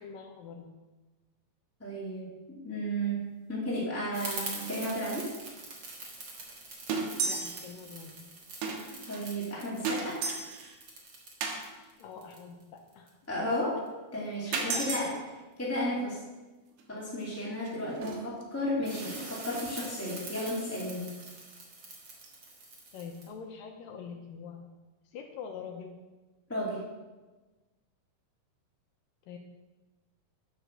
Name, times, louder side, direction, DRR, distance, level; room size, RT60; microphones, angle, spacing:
voice 1, 0.0-0.7 7.3-8.3 12.0-13.1 14.4-15.2 22.9-24.7 25.1-26.0 29.3-29.4, left 6 dB, 75° left, 3 dB, 2.1 m, -44 dB
voice 2, 1.8-5.3 9.1-10.2 13.3-13.8 14.1-15.1 15.6-16.2 16.9-21.0 26.5-26.8, equal, 10° left, -6 dB, 0.8 m, -33 dB
sound 1, 3.7-3.9 4.2-4.3 4.6-4.7 5.2-5.3 6.1-6.2 6.5-6.6 6.9-7.7 8.0-8.1 8.6-9.2 9.8-10.8 11.4-11.6 13.8-13.9 14.5-15.1 16.8-16.9 17.3-18.4 19.5-19.7 21.2-21.3 21.8-21.9 22.1-22.3, right 4 dB, 75° right, 3.1 m, -34 dB
sound 2, 4.1-13.1 18.8-23.3, right 2 dB, 50° right, 1.3 m, -44 dB
10.0 x 6.6 x 6.3 m, 1.2 s
omnidirectional pair, 4.8 m